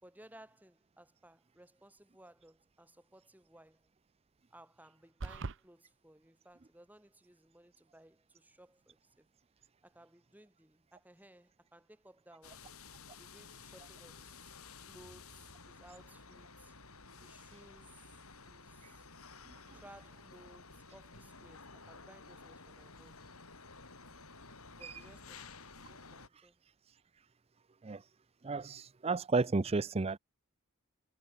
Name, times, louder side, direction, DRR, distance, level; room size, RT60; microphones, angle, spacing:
voice 1, 0.0-3.9 4.5-9.3 9.8-12.7 13.2-14.6 14.9-16.7 17.2-19.1 19.7-23.3 24.7-26.6, right 1 dB, 10° right, 4.9 m, -60 dB
sound 1, 5.2-5.6, right 3 dB, 55° right, 0.8 m, -39 dB
sound 2, 12.4-26.3, left 4 dB, 75° left, 7.9 m, -53 dB
voice 2, 19.5-19.8 24.8-25.0 26.3-26.5 26.9-27.0 27.8-28.1 28.4-30.2, right 3 dB, 25° right, 0.5 m, -34 dB
head